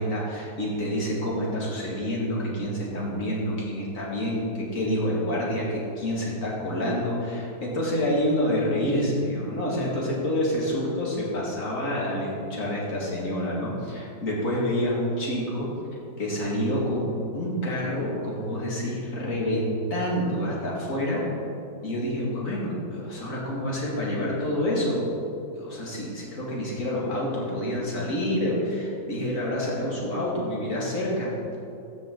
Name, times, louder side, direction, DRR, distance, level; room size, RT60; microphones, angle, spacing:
voice 1, 0.0-15.7 16.2-21.2 21.8-25.1 25.5-31.3, equal, 45° left, -5 dB, 2.4 m, -28 dB
14.0 x 6.1 x 3.9 m, 2.6 s
omnidirectional pair, 2.1 m